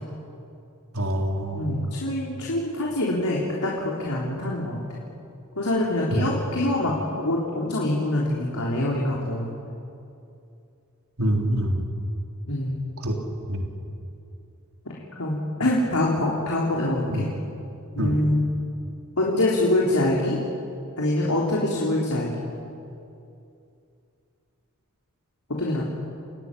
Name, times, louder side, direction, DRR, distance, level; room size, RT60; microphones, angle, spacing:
voice 1, 0.9-1.9 6.1-6.3 11.2-11.8 13.0-13.2 13.5-13.7 17.1-17.3 18.0-18.1, right 1 dB, 70° right, 1 dB, 3.5 m, -25 dB
voice 2, 1.5-4.8 5.6-9.5 12.5-12.8 14.9-17.3 18.0-18.5 19.2-20.4 21.0-22.4 25.6-25.8, left 1 dB, 85° left, -3 dB, 3.7 m, -25 dB
30.0 x 17.5 x 9.9 m, 2.6 s
head